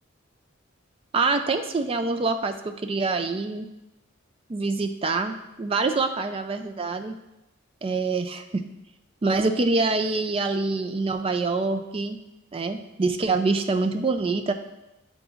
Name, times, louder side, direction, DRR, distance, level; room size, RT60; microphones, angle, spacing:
voice 1, 1.1-3.7 4.5-7.2 7.8-8.6 9.2-12.2 12.5-14.5, right 3 dB, 25° right, 7 dB, 0.3 m, -25 dB
10.0 x 3.9 x 2.4 m, 0.94 s
head